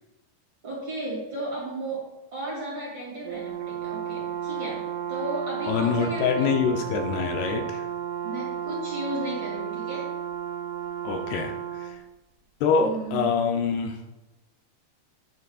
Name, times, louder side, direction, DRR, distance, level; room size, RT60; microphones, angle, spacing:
voice 1, 0.6-2.1 2.3-6.5 8.2-10.1 12.8-13.4, right 1 dB, 35° right, -6 dB, 2.4 m, -34 dB
Brass instrument, 3.3-12.0, right 9 dB, 85° right, 2.7 m, -33 dB
voice 2, 5.7-7.9 11.0-12.0 12.6-14.0, left 6 dB, 80° left, 4 dB, 2.5 m, -25 dB
10.5 x 6.9 x 2.3 m, 1.0 s
omnidirectional pair, 4.8 m